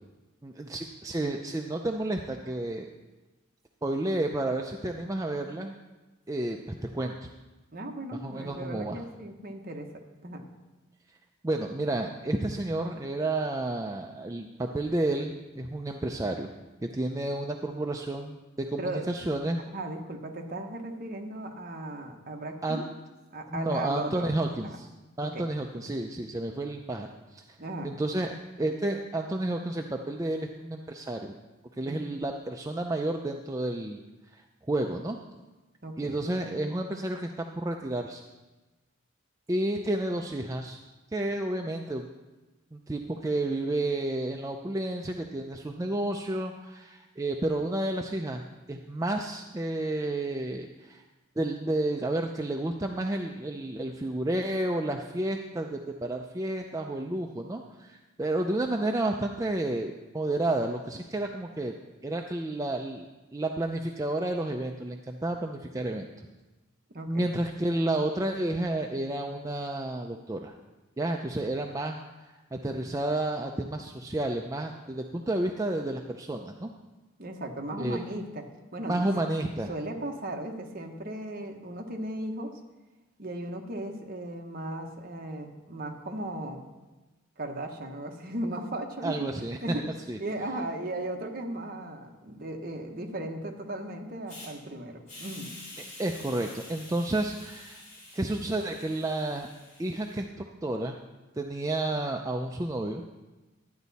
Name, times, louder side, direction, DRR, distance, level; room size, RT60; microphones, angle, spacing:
voice 1, 0.4-2.9 3.8-5.7 6.3-7.3 8.2-9.0 11.4-16.5 16.8-19.6 22.6-22.8 23.5-24.9 25.2-27.4 27.8-31.3 31.8-34.0 34.3-34.4 34.7-35.2 36.0-38.2 39.5-40.8 41.1-42.1 42.7-51.0 51.4-61.7 62.0-63.1 63.3-66.1 67.1-70.5 71.0-72.0 72.5-76.7 77.8-78.0 78.8-79.7 89.0-89.8 90.1-90.2 96.0-97.8 98.1-99.5 99.8-101.0 101.4-103.0, right 1 dB, 15° right, 3 dB, 0.4 m, -31 dB
voice 2, 7.7-9.9 10.2-10.4 18.8-19.1 19.7-22.8 23.3-24.3 24.6-24.8 25.2-25.4 27.6-27.9 31.8-32.0 35.8-36.2 66.9-67.2 77.2-78.4 78.7-79.0 79.7-82.6 83.2-86.6 87.4-89.3 89.6-89.8 90.2-95.6, right 1 dB, 45° right, 3 dB, 1.1 m, -36 dB
Hiss, 94.3-94.5 95.1-100.2, left 2 dB, 40° left, 4.4 m, -47 dB
11.5 x 9.2 x 4.1 m, 1.1 s
head